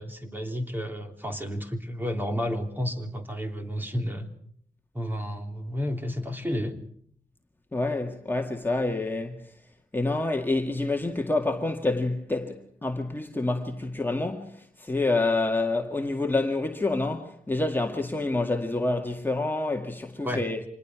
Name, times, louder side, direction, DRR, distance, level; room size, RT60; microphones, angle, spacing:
voice 1, 0.0-4.3 4.9-6.8 20.2-20.4, equal, 15° right, 3.2 m, -31 dB
voice 2, 7.7-9.4 9.9-20.6, left 2 dB, 15° left, 2.0 m, -27 dB
26.0 x 20.0 x 6.2 m
wide cardioid pair, 100°, 14 cm